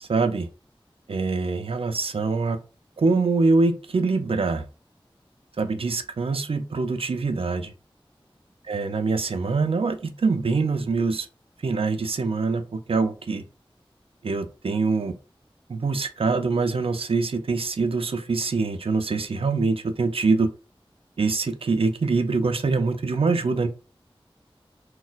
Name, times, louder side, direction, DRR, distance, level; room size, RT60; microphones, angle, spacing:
voice 1, 0.1-0.5 1.1-2.6 3.0-4.6 5.6-7.7 8.7-11.3 11.6-13.4 14.2-15.1 15.7-20.5 21.2-23.7, right 4 dB, 90° right, 8 dB, 0.4 m, -24 dB
2.3 x 2.1 x 3.9 m, 0.33 s
wide cardioid pair, 55°, 9 cm